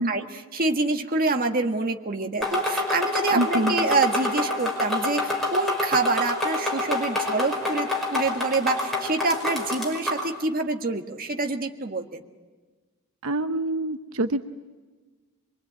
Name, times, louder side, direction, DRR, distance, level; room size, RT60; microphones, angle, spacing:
voice 1, 0.0-12.2, right 3 dB, 40° right, 4 dB, 1.6 m, -26 dB
sound 1, 2.4-10.3, left 2 dB, ahead, 5.4 m, -27 dB
voice 2, 3.4-3.7 13.2-14.5, right 1 dB, 85° right, 10 dB, 0.9 m, -25 dB
25.0 x 23.0 x 9.0 m, 1.3 s
head